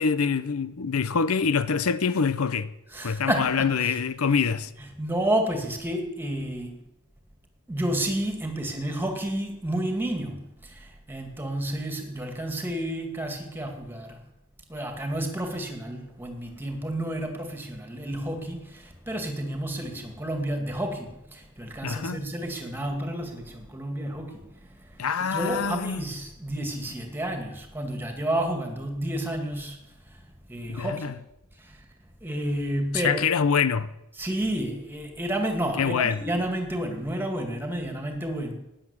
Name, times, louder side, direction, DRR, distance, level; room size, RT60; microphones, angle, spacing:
voice 1, 0.0-2.7 3.0-4.7 21.8-22.2 25.0-26.0 30.7-31.1 32.9-33.9 35.8-36.2, left 6 dB, 90° left, 0.7 m, -25 dB
voice 2, 2.9-4.0 4.8-6.7 7.7-14.2 14.7-25.0 25.3-29.8 30.1-30.2 30.5-31.1 31.6-31.8 32.2-33.2 34.2-38.5, right 1 dB, 10° right, 2.4 m, -31 dB
16.5 x 10.0 x 7.3 m
head